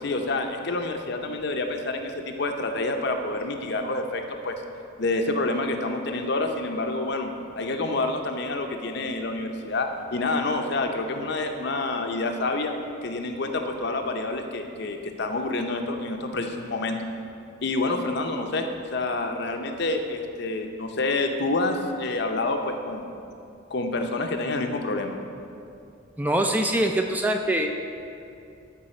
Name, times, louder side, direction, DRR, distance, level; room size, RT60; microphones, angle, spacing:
voice 1, 0.0-4.5 5.0-7.3 7.6-12.7 13.0-17.0 17.6-23.1 23.7-25.2, left 2 dB, 55° left, 5 dB, 0.6 m, -28 dB
voice 2, 26.2-27.8, right 1 dB, 10° right, 4 dB, 0.3 m, -23 dB
13.0 x 4.8 x 4.3 m, 2.6 s
head